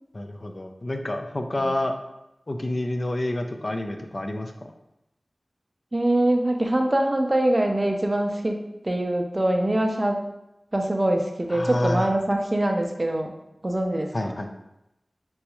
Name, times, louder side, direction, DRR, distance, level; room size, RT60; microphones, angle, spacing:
voice 1, 0.1-1.9 2.5-4.5 11.5-12.1 14.1-14.5, left 1 dB, 45° left, 4 dB, 0.4 m, -28 dB
voice 2, 5.9-10.2 10.7-13.3 13.6-14.4, right 1 dB, 30° right, 3 dB, 0.4 m, -24 dB
4.0 x 2.3 x 2.9 m, 0.88 s
wide cardioid pair, 70°, 0 cm